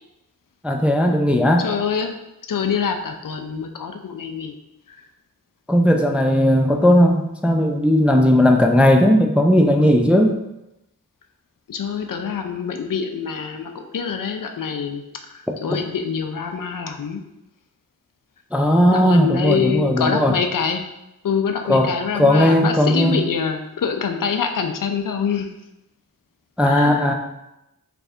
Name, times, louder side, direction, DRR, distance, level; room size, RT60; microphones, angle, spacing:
voice 1, 0.6-1.7 5.7-10.4 15.7-15.8 18.5-20.3 21.7-23.2 26.6-27.1, equal, 5° right, 3 dB, 0.3 m, -16 dB
voice 2, 1.6-2.1 2.5-4.5 4.9-5.0 11.7-15.0 15.3-17.2 18.9-20.8 21.2-25.5 26.6-27.1, left 6 dB, 65° left, 5 dB, 0.5 m, -25 dB
3.3 x 2.6 x 3.5 m, 0.89 s
wide cardioid pair, 50°, 35 cm